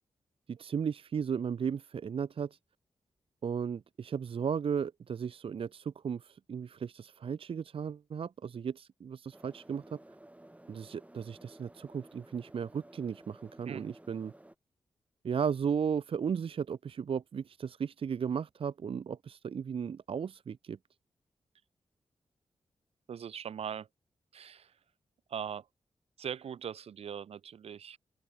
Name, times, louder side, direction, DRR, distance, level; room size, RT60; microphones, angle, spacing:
voice 1, 0.5-2.6 3.4-10.0 10.7-14.3 15.2-20.8, right 7 dB, 65° right, 0.7 m, -35 dB
sound 1, 9.3-14.5, right 1 dB, 15° right, 6.5 m, -55 dB
voice 2, 23.1-23.9 24.3-24.8 25.3-25.7 26.2-28.0, right 8 dB, 80° right, 1.2 m, -40 dB
open air
cardioid pair, 55°, 10 cm